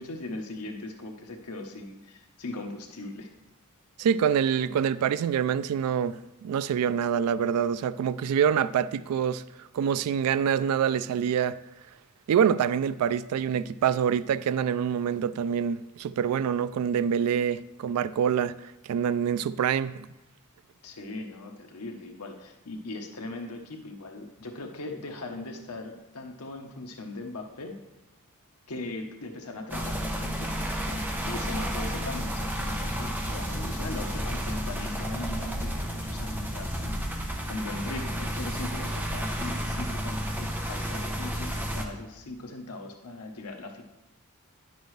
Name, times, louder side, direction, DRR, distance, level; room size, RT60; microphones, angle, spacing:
voice 1, 0.0-3.3 20.8-27.8 28.7-43.8, left 2 dB, 90° left, 0.9 m, -39 dB
voice 2, 4.0-11.6 12.3-18.5 18.8-20.1, right 8 dB, 80° right, 0.3 m, -26 dB
sound 1, 29.7-41.8, equal, 10° right, 0.8 m, -31 dB
10.0 x 6.7 x 3.2 m
head